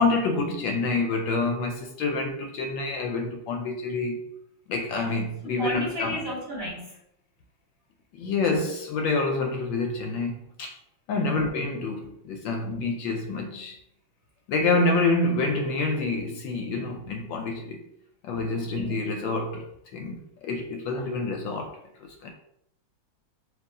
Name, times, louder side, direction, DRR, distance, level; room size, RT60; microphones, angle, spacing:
voice 1, 0.0-4.2 4.7-6.2 8.1-10.7 11.1-13.8 14.5-17.8 18.2-19.7 19.9-22.3, left 3 dB, 75° left, 1.3 m, -27 dB
voice 2, 5.6-7.0 11.1-11.4 18.5-18.7, equal, 30° right, 1.8 m, -32 dB
4.7 x 2.8 x 3.7 m
omnidirectional pair, 2.2 m